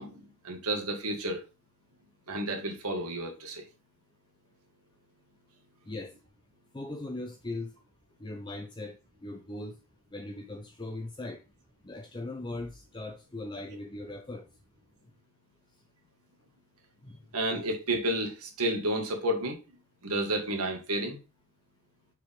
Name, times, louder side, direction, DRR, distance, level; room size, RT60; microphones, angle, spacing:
voice 1, 0.0-1.4 2.3-3.7 17.3-19.6 20.0-21.2, right 1 dB, 80° right, 1.9 m, -31 dB
voice 2, 6.7-7.7 8.2-9.0 9.2-9.8 10.1-11.4 11.8-14.5 17.0-17.2, left 2 dB, 20° left, 0.6 m, -39 dB
6.3 x 5.0 x 3.6 m
head